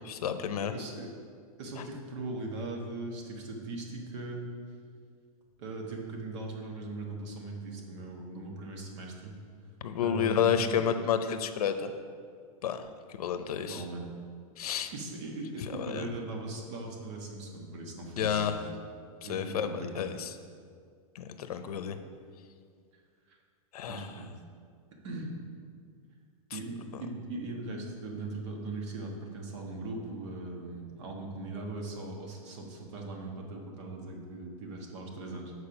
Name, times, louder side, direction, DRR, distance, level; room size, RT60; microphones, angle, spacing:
voice 1, 0.1-0.7 1.8-1.9 9.8-11.9 12.6-12.9 13.2-13.8 14.6-14.9 15.7-16.1 18.2-18.6 19.2-20.4 21.1-22.0 23.7-24.1 26.5-26.6, left 8 dB, 85° left, 9 dB, 0.6 m, -30 dB
voice 2, 0.6-1.1 1.6-4.4 5.6-9.4 10.0-10.8 13.7-14.1 14.9-18.7 19.2-20.0 23.3-23.4 23.9-24.3 25.0-25.4 26.5-35.5, right 2 dB, 50° right, 1 dB, 1.4 m, -39 dB
6.8 x 4.7 x 5.7 m, 2.1 s
supercardioid pair, 155°, 19 cm